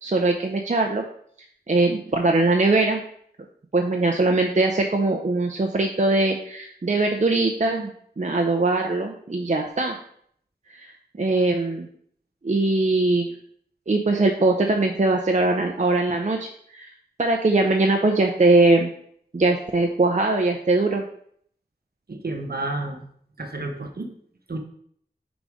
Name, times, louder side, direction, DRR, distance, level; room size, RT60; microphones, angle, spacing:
voice 1, 0.0-1.0 1.7-3.0 3.7-7.9 8.2-10.0 10.7-10.9 11.2-11.9 12.4-13.3 13.9-16.9 17.2-18.9 19.3-21.0, right 2 dB, 45° right, 2 dB, 0.6 m, -21 dB
voice 2, 22.1-23.0 23.4-24.1 24.5-24.6, right 2 dB, 65° right, 4 dB, 1.0 m, -30 dB
4.7 x 4.0 x 4.9 m, 0.64 s
wide cardioid pair, 40°, 17 cm